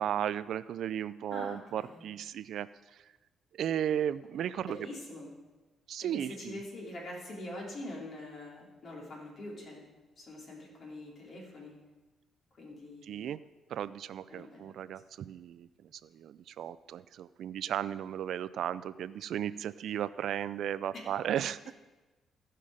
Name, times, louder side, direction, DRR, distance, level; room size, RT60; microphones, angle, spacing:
voice 1, 0.0-2.7 3.5-4.8 5.9-6.6 13.0-13.4 13.7-21.7, right 10 dB, 70° right, 16 dB, 0.4 m, -35 dB
voice 2, 1.3-2.0 4.6-5.3 6.0-9.9 10.2-11.8 12.5-13.3 14.3-14.7, left 1 dB, 55° left, -3 dB, 3.5 m, -44 dB
15.5 x 5.6 x 4.9 m, 1.2 s
cardioid pair, 90°, 0 cm